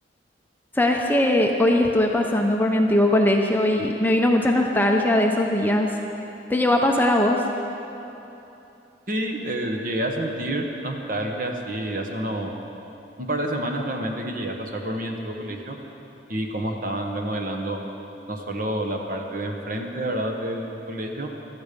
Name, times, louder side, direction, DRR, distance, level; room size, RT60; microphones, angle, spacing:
voice 1, 0.8-5.9 6.5-7.4, left 1 dB, 10° left, 1 dB, 0.8 m, -20 dB
voice 2, 9.1-12.5 13.2-15.8 16.3-17.8 18.3-21.3, right 1 dB, 45° right, 2 dB, 1.3 m, -28 dB
15.0 x 12.5 x 5.3 m, 3.0 s
head